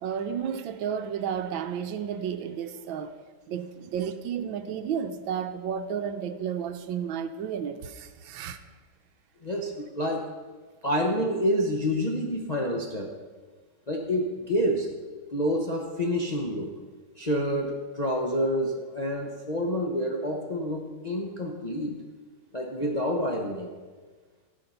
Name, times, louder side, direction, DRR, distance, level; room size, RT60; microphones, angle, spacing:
voice 1, 0.0-3.1 3.5-8.6, right 8 dB, 80° right, 1.4 m, -32 dB
voice 2, 9.4-10.2 10.8-13.1 13.9-14.9 15.3-16.7 17.2-22.0 22.5-23.7, equal, 40° left, 0.6 m, -28 dB
15.5 x 5.7 x 5.5 m
omnidirectional pair, 2.2 m